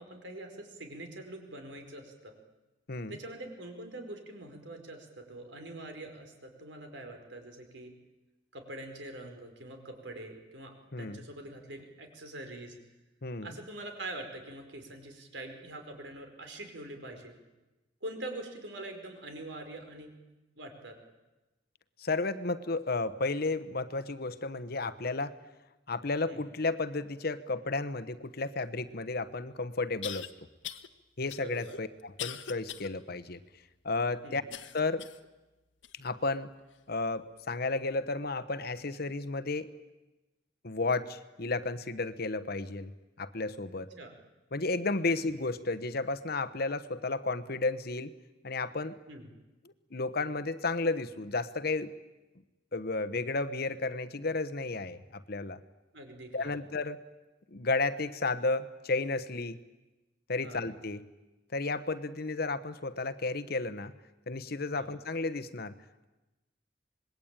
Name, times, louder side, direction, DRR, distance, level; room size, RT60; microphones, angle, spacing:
voice 1, 0.0-2.3 3.1-7.9 8.5-12.8 13.4-17.3 18.0-20.1 20.5-21.0 26.2-26.4 31.4-31.8 34.2-34.4 43.7-44.1 49.1-49.3 55.9-56.6 60.4-60.6 64.7-64.9, right 1 dB, 70° right, 5 dB, 4.8 m, -44 dB
voice 2, 22.0-25.4 25.9-30.3 31.2-33.4 33.8-34.4 34.7-35.1 35.9-36.5 36.9-39.7 40.6-42.9 43.2-43.9 44.5-48.1 48.4-49.0 49.9-51.9 52.7-55.6 56.3-57.0 57.5-59.6 60.3-61.0 61.5-63.9 64.3-65.7, left 3 dB, 55° left, 12 dB, 1.1 m, -32 dB
sound 1, 29.0-29.1 30.0-30.3 30.6-30.9 31.3-32.9 33.4-33.5 34.5-35.3 35.8-35.9 36.7-36.8, left 10 dB, 85° left, 1.3 m, -41 dB
26.5 x 21.5 x 8.9 m, 1.1 s
head